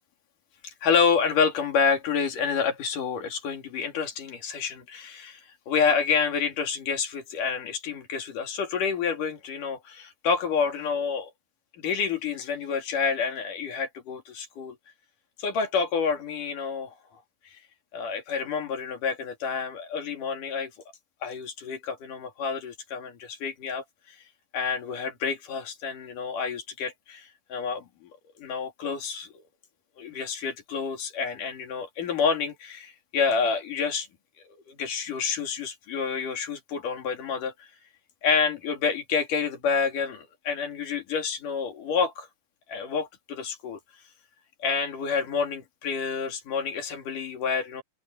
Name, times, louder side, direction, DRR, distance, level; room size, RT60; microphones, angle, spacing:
voice 1, 0.6-5.4 5.7-11.3 11.8-14.8 15.4-17.0 17.9-20.7 21.2-23.8 24.5-28.1 28.4-29.3 30.0-34.1 34.7-37.5 38.2-42.3 42.7-43.8 44.6-47.8, left 5 dB, 80° left, 4.3 m, -28 dB
omnidirectional pair, 3.7 m